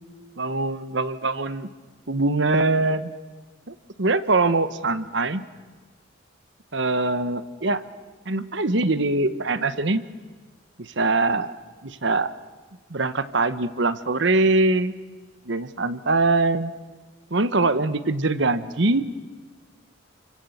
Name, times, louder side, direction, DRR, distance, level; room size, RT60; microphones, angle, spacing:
voice 1, 0.4-1.7 2.1-3.1 3.7-5.4 6.7-7.8 8.3-10.0 10.8-11.6 12.0-12.3 12.9-14.9 15.5-16.7 17.3-19.0, right 2 dB, 65° right, 13 dB, 1.1 m, -23 dB
29.5 x 24.5 x 8.0 m, 1.3 s
head